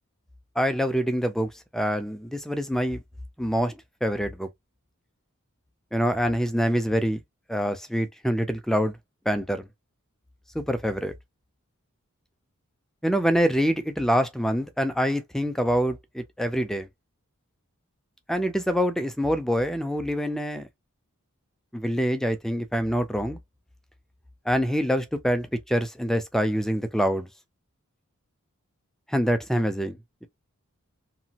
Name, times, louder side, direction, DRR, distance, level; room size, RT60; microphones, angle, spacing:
voice 1, 0.6-3.0 3.4-3.7 4.0-4.5 5.9-7.2 7.5-8.9 9.3-9.7 10.5-11.1 13.0-16.9 18.3-20.7 21.7-23.4 24.5-27.3 29.1-30.3, equal, ahead, 0.4 m, -25 dB
2.9 x 2.3 x 2.8 m
head